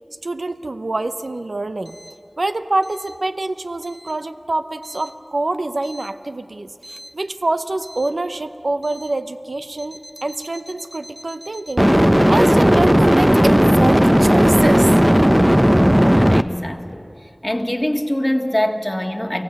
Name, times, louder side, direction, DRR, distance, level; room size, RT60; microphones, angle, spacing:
voice 1, 0.2-2.0 2.4-14.9, right 2 dB, 85° right, 11 dB, 0.7 m, -25 dB
sound 1, 6.9-7.1 11.8-16.4, equal, 10° right, 0.6 m, -14 dB
voice 2, 16.1-17.0 17.4-19.4, left 1 dB, 20° left, 3 dB, 1.8 m, -23 dB
24.5 x 17.0 x 7.9 m, 2.7 s
wide cardioid pair, 40°, 0 cm